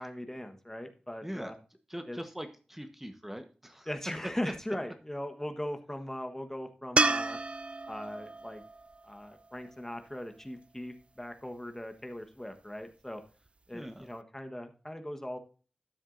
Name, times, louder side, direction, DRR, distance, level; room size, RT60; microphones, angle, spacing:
voice 1, 0.0-1.5 2.1-2.2 3.9-7.4 7.9-8.6 9.1-13.2 13.7-15.4, left 1 dB, 15° left, 7 dB, 1.3 m, -39 dB
voice 2, 1.2-1.5 1.9-3.9 4.4-4.5 13.7-14.1, equal, 10° right, 7 dB, 1.2 m, -41 dB
sound 1, 7.0-10.2 13.5-13.6, right 3 dB, 40° right, 0.4 m, -32 dB
12.5 x 7.3 x 2.6 m, 0.37 s
cardioid pair, 45°, 3 cm